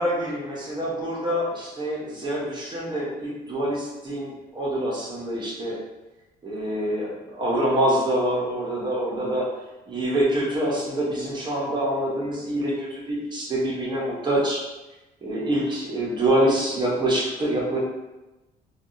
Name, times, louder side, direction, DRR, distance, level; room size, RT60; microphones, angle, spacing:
voice 1, 0.0-5.8 6.4-9.5 9.9-14.6 15.2-17.8, right 1 dB, 25° right, -5 dB, 0.9 m, -25 dB
3.4 x 2.3 x 2.6 m, 1.0 s
cardioid pair, 110°, 17 cm